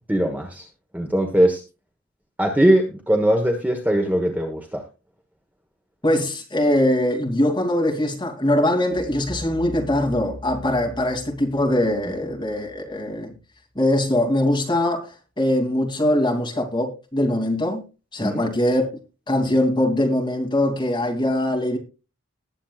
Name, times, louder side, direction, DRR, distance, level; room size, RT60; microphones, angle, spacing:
voice 1, 0.1-0.7 0.9-1.6 2.4-4.8 18.2-18.4, right 1 dB, 10° right, 1.3 m, -20 dB
voice 2, 6.0-13.3 13.7-15.1 15.4-17.8 18.1-18.9 19.3-21.8, left 1 dB, 20° left, 3.0 m, -22 dB
sound 1, 8.9-13.8, left 1 dB, 45° right, 5.9 m, -40 dB
20.0 x 8.0 x 2.5 m
head